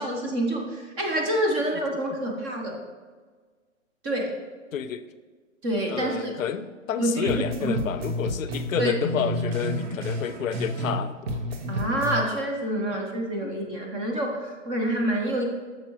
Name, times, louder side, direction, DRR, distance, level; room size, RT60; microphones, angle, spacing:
voice 1, 0.0-2.8 4.0-4.3 5.6-6.4 7.0-7.7 8.8-8.9 11.7-15.4, right 1 dB, 15° right, 1 dB, 0.5 m, -27 dB
voice 2, 4.7-5.1 5.9-11.2 13.4-13.5, left 8 dB, 85° left, 12 dB, 0.6 m, -30 dB
sound 1, 7.3-11.0 11.3-12.2, equal, 50° right, 1.0 m, -30 dB
8.2 x 6.3 x 3.0 m, 1.5 s
hypercardioid pair, 140°, 39 cm